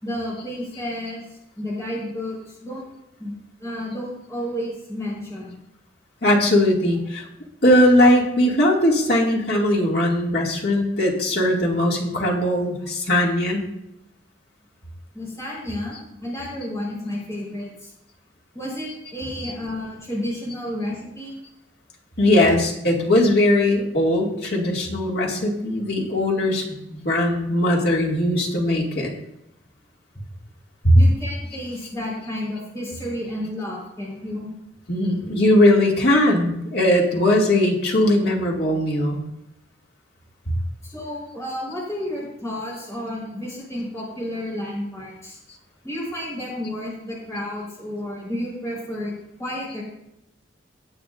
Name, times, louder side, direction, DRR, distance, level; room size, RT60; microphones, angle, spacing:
voice 1, 0.0-2.8 3.2-3.3 3.6-5.5 9.5-9.6 15.1-17.9 18.5-21.4 30.9-34.5 40.8-45.4 45.8-49.1 49.4-49.8, left 1 dB, 15° left, -5 dB, 4.2 m, -31 dB
voice 2, 6.2-7.2 7.6-13.7 22.2-26.6 26.9-29.1 30.8-31.0 34.9-39.2, left 1 dB, 60° left, -2 dB, 2.3 m, -19 dB
17.5 x 8.6 x 2.5 m, 0.84 s
head